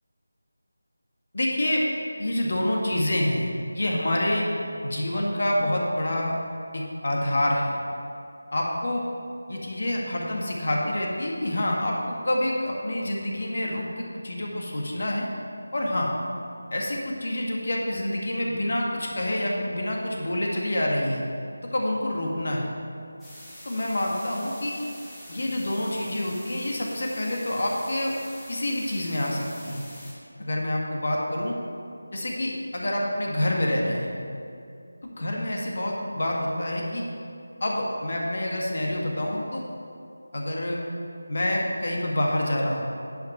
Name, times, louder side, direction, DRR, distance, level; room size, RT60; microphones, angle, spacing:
voice 1, 1.3-1.8 2.2-4.5 4.8-6.4 6.7-7.8 8.5-9.0 9.5-15.3 15.7-16.1 16.7-21.2 21.7-22.7 23.6-24.8 25.3-28.1 28.5-29.8 30.4-31.6 32.1-34.1 35.1-37.0 37.6-39.6 40.3-40.8 41.3-42.9, left 1 dB, 55° left, -1 dB, 1.8 m, -27 dB
sound 1, 23.2-30.1, left 1 dB, 10° left, 1.6 m, -45 dB
10.0 x 5.7 x 5.9 m, 2.5 s
figure-of-eight pair, 165°, 0 cm